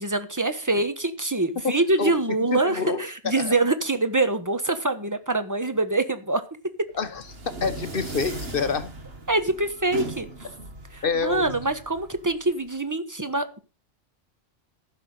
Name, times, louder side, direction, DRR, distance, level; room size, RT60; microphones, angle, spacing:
voice 1, 0.0-6.4 9.3-10.3 10.9-13.6, right 2 dB, 15° right, 1.2 m, -25 dB
voice 2, 1.6-2.2 2.5-3.5 6.9-7.2 7.6-8.9 11.0-11.4, left 5 dB, 55° left, 1.1 m, -27 dB
sound 1, 7.0-12.8, right 3 dB, 60° right, 1.8 m, -38 dB
14.5 x 6.5 x 5.5 m
omnidirectional pair, 1.1 m